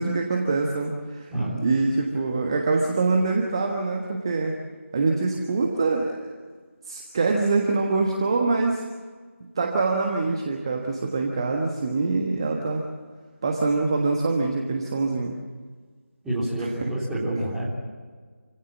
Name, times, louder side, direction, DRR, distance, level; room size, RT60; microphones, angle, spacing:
voice 1, 0.0-1.3 1.6-4.6 4.9-6.3 6.8-8.8 9.5-12.9 13.4-15.4 16.6-16.9, right 3 dB, 20° right, 1 dB, 1.4 m, -24 dB
voice 2, 1.3-1.6 16.2-17.7, right 1 dB, 5° right, -9 dB, 3.5 m, -28 dB
28.0 x 17.0 x 7.3 m, 1.5 s
figure-of-eight pair, 165°, 8 cm